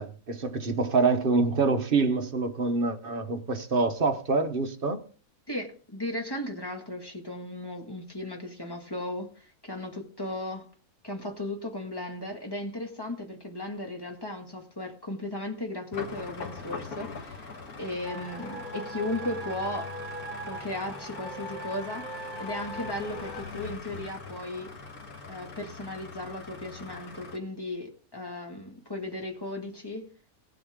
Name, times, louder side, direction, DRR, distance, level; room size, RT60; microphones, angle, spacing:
voice 1, 0.0-5.0, right 4 dB, 40° right, 1.2 m, -26 dB
voice 2, 5.5-10.7 11.0-17.5 17.8-19.9 20.5-24.7 25.3-30.1, left 1 dB, 15° left, 1.9 m, -36 dB
sound 1, 15.9-27.4, left 4 dB, 85° left, 2.1 m, -42 dB
sound 2, 18.0-23.4, right 1 dB, 30° left, 6.9 m, -40 dB
18.5 x 7.7 x 3.7 m
omnidirectional pair, 1.6 m